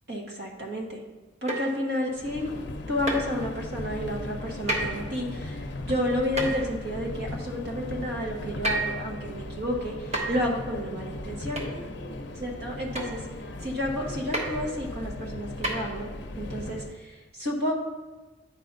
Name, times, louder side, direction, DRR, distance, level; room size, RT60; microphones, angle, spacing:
voice 1, 0.1-1.0 1.4-2.5 2.9-11.6 12.4-13.2 13.6-16.1 16.3-17.7, left 1 dB, 60° right, 1 dB, 1.3 m, -31 dB
sound 1, 1.5-1.8 3.1-3.3 4.7-4.9 6.4-6.6 8.6-9.0 10.1-10.4 11.6-11.7 12.9-13.2 14.3-14.5 15.6-15.7, right 2 dB, 35° right, 1.2 m, -29 dB
Subway metro underground, 2.2-17.0, left 1 dB, 65° left, 0.6 m, -37 dB
9.3 x 5.0 x 4.0 m, 1.2 s
head